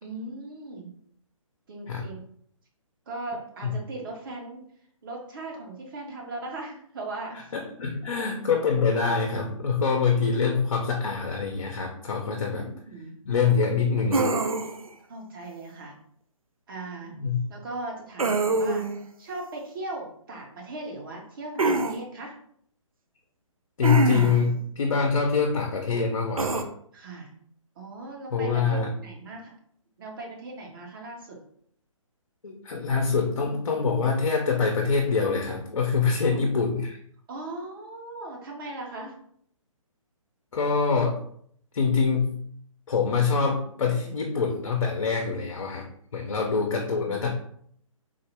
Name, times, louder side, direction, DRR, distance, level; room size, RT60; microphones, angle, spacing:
voice 1, 0.0-0.9 1.7-2.2 3.1-4.7 5.0-7.5 12.2-13.1 15.1-16.0 16.7-17.1 17.5-18.9 19.2-22.3 26.9-27.4 27.8-29.5 30.0-31.4 36.2-36.4 37.3-39.2 43.8-43.9 46.2-47.2, right 2 dB, 40° right, -1 dB, 1.0 m, -38 dB
voice 2, 7.5-12.7 13.3-14.3 17.1-17.4 23.8-26.6 28.3-28.9 32.4-37.0 40.5-41.2 41.7-42.3 42.9-45.9 46.1-47.3, left 5 dB, 65° left, 1 dB, 0.6 m, -25 dB
sound 1, 14.1-14.9 18.2-19.0 21.6-22.0 23.8-24.5 26.4-26.6, right 3 dB, 85° right, 0.5 m, -24 dB
3.7 x 2.1 x 3.3 m, 0.65 s
figure-of-eight pair, 135°, 17 cm